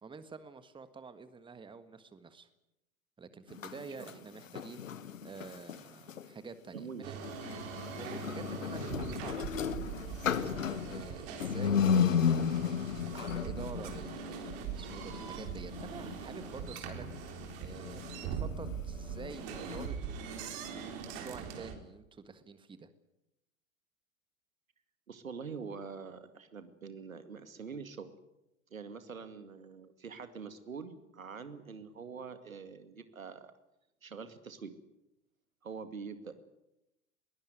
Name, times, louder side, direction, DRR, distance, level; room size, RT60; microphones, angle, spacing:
voice 1, 0.0-2.5 3.2-4.9 5.2-7.2 7.9-9.7 10.4-12.3 13.1-17.1 17.6-18.0 18.3-20.3 20.7-22.9, right 4 dB, 10° right, 12 dB, 1.5 m, -48 dB
sound 1, 3.5-6.3 7.1-19.9, left 7 dB, 70° left, 1.5 m, -35 dB
voice 2, 3.8-4.3 6.7-7.1 25.1-28.1 28.7-33.5 34.0-34.7 35.6-36.3, right 5 dB, 75° right, 10 dB, 2.3 m, -45 dB
sound 2, 7.0-21.7, right 7 dB, 45° right, 3.9 m, -42 dB
21.5 x 18.0 x 9.3 m, 0.90 s
figure-of-eight pair, 90°, 40 cm